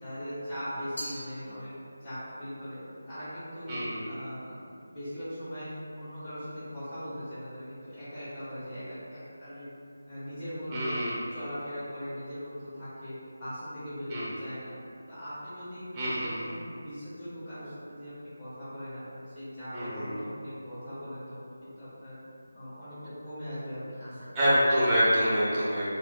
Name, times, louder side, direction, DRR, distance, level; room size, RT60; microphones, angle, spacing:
voice 1, 0.0-3.7 4.1-9.7 10.1-10.9 11.3-14.8 15.1-15.8 16.2-22.2 22.5-24.3, equal, 15° left, -16 dB, 1.5 m, -40 dB
Glass, 1.0-2.2, equal, 70° left, 1.2 m, -42 dB
voice 2, 3.7-4.1 10.7-11.2 14.1-14.3 15.9-16.5 19.7-20.1 24.3-25.9, equal, 15° right, -10 dB, 0.8 m, -26 dB
4.1 x 2.1 x 2.9 m, 2.5 s
figure-of-eight pair, 160°, 0 cm